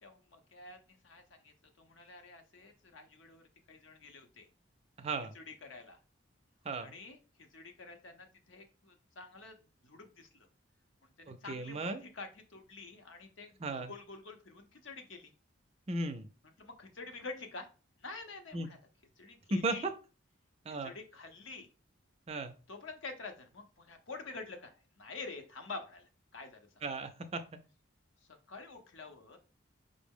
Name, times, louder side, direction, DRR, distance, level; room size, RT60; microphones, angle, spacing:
voice 1, 0.0-4.5 5.3-6.0 6.8-9.6 9.8-10.5 11.2-15.3 16.6-17.7 18.0-18.8 19.2-19.9 20.8-21.7 22.7-26.7 28.5-29.4, left 3 dB, 70° left, 6 dB, 0.7 m, -48 dB
voice 2, 5.0-5.3 6.6-7.0 11.3-12.0 13.6-13.9 15.9-16.3 18.5-18.7 19.5-19.9 20.7-20.9 22.3-22.5 26.8-27.4, right 2 dB, 30° right, 9 dB, 0.4 m, -35 dB
5.2 x 2.0 x 3.6 m, 0.34 s
head